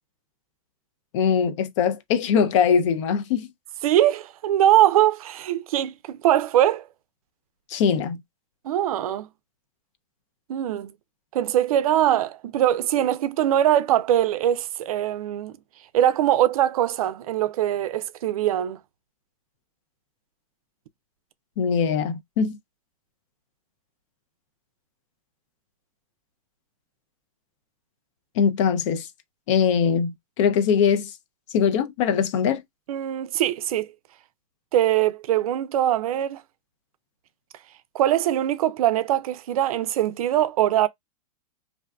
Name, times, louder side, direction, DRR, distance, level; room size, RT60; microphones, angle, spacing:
voice 1, 1.1-3.5 7.7-8.2 21.6-22.6 28.4-29.1 29.5-31.1 31.5-32.6, left 7 dB, 55° left, 0.5 m, -22 dB
voice 2, 3.8-6.9 8.6-9.3 10.5-10.9 11.3-15.5 15.9-18.8 32.9-33.9 34.7-36.4 37.9-40.9, right 12 dB, 70° right, 0.4 m, -22 dB
2.6 x 2.2 x 2.3 m
hypercardioid pair, 130°, 19 cm